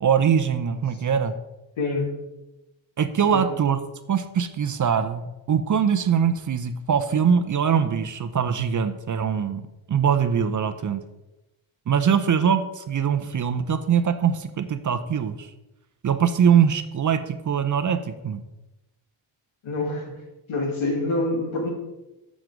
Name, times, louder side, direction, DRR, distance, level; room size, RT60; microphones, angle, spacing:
voice 1, 0.0-1.3 3.0-3.8 4.1-9.6 9.9-11.0 11.9-15.5 16.0-18.0 18.2-18.4, right 7 dB, 40° right, 9 dB, 0.6 m, -22 dB
voice 2, 1.8-2.2 3.2-3.4 19.6-20.2 20.5-21.7, left 2 dB, 75° left, 1 dB, 2.6 m, -26 dB
7.9 x 6.2 x 5.1 m, 0.98 s
cardioid pair, 125°, 48 cm